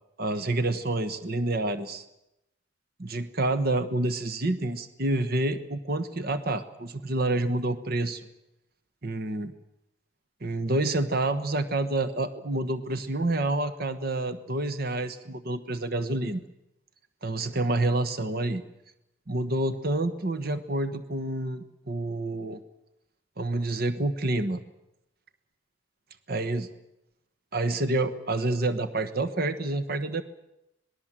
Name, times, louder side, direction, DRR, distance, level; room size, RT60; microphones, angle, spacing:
voice 1, 0.2-2.0 3.0-8.2 9.0-9.5 10.4-16.4 17.2-18.6 19.3-22.6 23.4-24.6 26.3-26.7 27.5-30.2, right 2 dB, 55° right, 10 dB, 1.3 m, -28 dB
26.0 x 19.5 x 7.5 m, 0.88 s
head